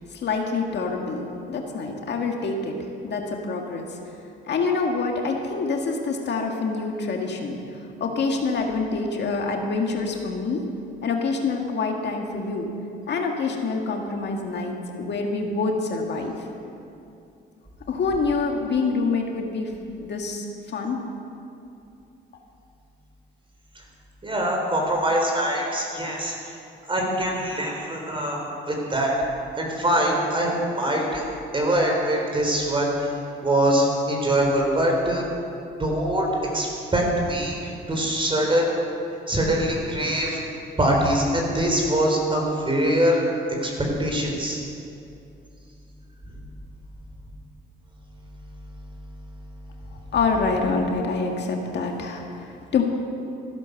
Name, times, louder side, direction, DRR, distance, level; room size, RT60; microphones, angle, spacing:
voice 1, 0.1-2.8 3.0-4.0 4.5-10.7 11.0-12.7 13.1-16.4 17.9-19.7 20.0-20.5 20.7-21.0 50.1-52.8, left 4 dB, 60° left, 2 dB, 1.9 m, -26 dB
voice 2, 24.2-26.3 26.9-29.1 29.6-31.2 31.5-33.1 33.4-35.2 35.8-36.3 36.5-38.7 39.3-40.4 40.8-43.2 43.6-43.7 44.0-44.6, right 1 dB, 25° right, 0 dB, 4.1 m, -23 dB
14.5 x 12.0 x 6.7 m, 2.6 s
cardioid pair, 90°, 20 cm